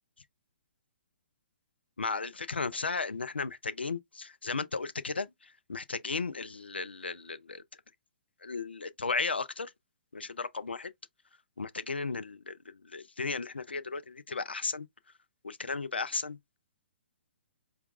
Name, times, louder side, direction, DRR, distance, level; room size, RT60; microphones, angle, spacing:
voice 1, 2.0-7.6 8.4-9.7 10.1-10.9 11.6-14.9 15.4-16.4, left 4 dB, 80° left, 0.4 m, -35 dB
4.4 x 2.3 x 2.4 m
figure-of-eight pair, 120°, 6 cm